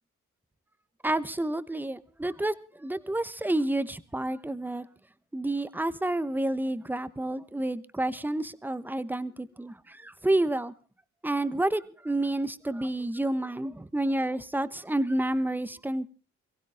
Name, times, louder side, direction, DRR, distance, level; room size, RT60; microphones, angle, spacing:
voice 1, 1.0-4.9 5.3-10.7 11.2-16.0, right 1 dB, 5° right, 15 dB, 1.0 m, -29 dB
23.0 x 16.0 x 3.5 m, 0.34 s
cardioid pair, 90°, 30 cm